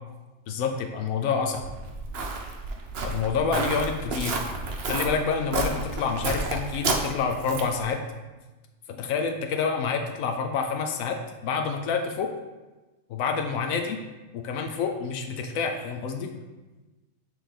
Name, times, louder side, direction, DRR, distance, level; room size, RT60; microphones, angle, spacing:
voice 1, 0.5-1.6 3.0-4.4 4.9-8.0 8.9-12.3 13.1-14.0 14.3-16.3, left 5 dB, 85° left, 4 dB, 1.0 m, -28 dB
Walk footsteps, 1.6-7.8, right 3 dB, 55° right, 0.8 m, -31 dB
7.8 x 3.3 x 3.7 m, 1.2 s
omnidirectional pair, 1.4 m